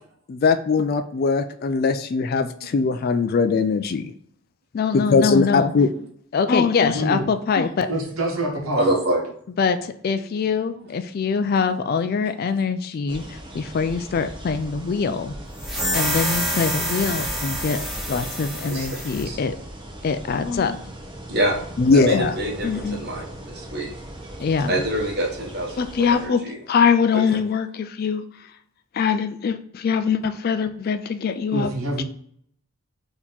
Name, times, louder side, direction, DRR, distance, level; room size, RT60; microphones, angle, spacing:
voice 1, 0.3-4.1 4.7-5.9 6.3-7.9 9.6-13.2 13.5-15.3 15.9-17.8 18.1-19.5 20.0-20.8 21.8-22.3 22.6-23.0 24.4-24.7 25.8-28.2 28.9-31.7 32.0-32.1, left 5 dB, 45° left, 10 dB, 0.3 m, -22 dB
voice 2, 6.9-7.2 7.9-8.9 31.5-32.0, right 1 dB, 70° right, 1 dB, 1.1 m, -26 dB
voice 3, 8.7-9.2 10.1-10.3 10.8-10.9 12.1-12.2 18.7-19.0 19.2-19.4 21.3-21.6 21.9-23.9 24.7-26.6 27.1-27.2, right 1 dB, 45° right, 0 dB, 1.1 m, -26 dB
sound 1, 13.1-26.3, right 1 dB, 20° right, 0.8 m, -38 dB
sound 2, 15.6-19.3, equal, ahead, 1.4 m, -27 dB
4.2 x 2.9 x 3.9 m, 0.63 s
head